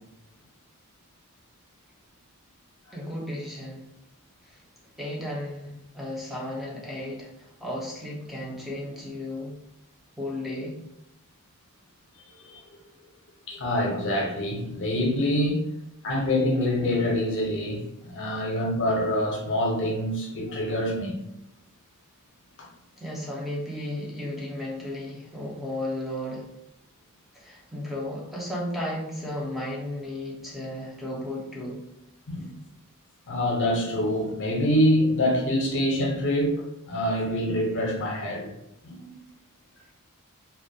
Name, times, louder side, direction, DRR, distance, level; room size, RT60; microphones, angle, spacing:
voice 1, 2.9-3.9 4.5-4.6 5.0-9.6 10.2-10.8 23.0-26.5 27.3-31.8, left 1 dB, ahead, -4 dB, 0.5 m, -34 dB
voice 2, 13.5-15.6 16.0-21.2 22.6-22.7 32.3-32.5 33.3-38.5 38.8-39.1, left 1 dB, 55° left, 0 dB, 0.6 m, -25 dB
2.2 x 2.1 x 2.6 m, 0.83 s
head